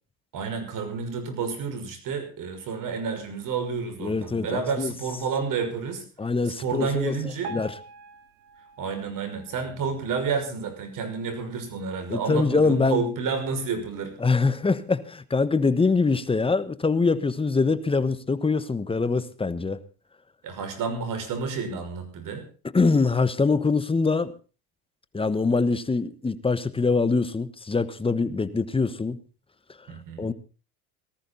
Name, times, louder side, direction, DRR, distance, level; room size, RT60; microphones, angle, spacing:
voice 1, 0.3-6.0 6.6-7.5 8.8-14.1 20.4-22.4 29.9-30.3, right 5 dB, 45° right, 8 dB, 5.9 m, -30 dB
voice 2, 4.0-4.9 6.2-7.7 12.1-13.1 14.2-19.8 22.7-24.3 25.1-29.2 30.2-30.3, left 4 dB, 10° left, 15 dB, 1.2 m, -24 dB
Piano, 7.4-10.5 11.1-11.2 11.5-11.6 12.3-12.4 13.0-13.1, right 4 dB, 75° right, 3.0 m, -44 dB
18.5 x 14.5 x 4.0 m, 0.35 s
supercardioid pair, 105°, 44 cm